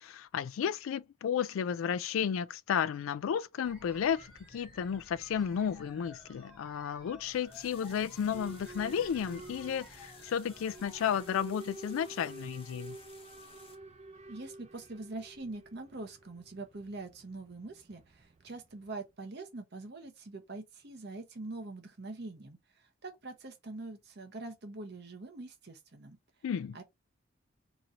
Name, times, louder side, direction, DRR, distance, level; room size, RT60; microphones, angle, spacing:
voice 1, 0.0-13.0 26.4-26.8, left 8 dB, 75° left, 0.3 m, -33 dB
sound 1, 3.6-11.2, left 1 dB, 5° right, 1.0 m, -55 dB
sound 2, 7.2-13.8, left 4 dB, 25° left, 0.8 m, -57 dB
Boat Water vehicle / Alarm, 8.3-19.0, right 2 dB, 30° right, 0.4 m, -50 dB
voice 2, 14.3-26.2 26.7-26.8, right 2 dB, 50° right, 0.8 m, -44 dB
3.0 x 2.6 x 4.1 m
head